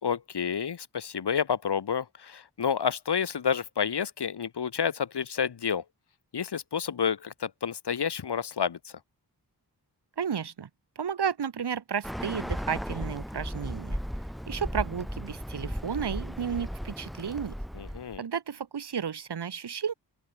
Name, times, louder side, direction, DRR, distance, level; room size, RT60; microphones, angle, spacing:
voice 1, 0.0-5.8 6.3-8.9 17.7-18.2, left 7 dB, 85° left, 4.8 m, -29 dB
voice 2, 10.2-10.7 11.0-14.0 14.5-17.5 18.2-19.9, right 7 dB, 85° right, 4.4 m, -32 dB
Bird, 12.0-18.2, equal, ahead, 6.7 m, -36 dB
open air
wide cardioid pair, 180°, 39 cm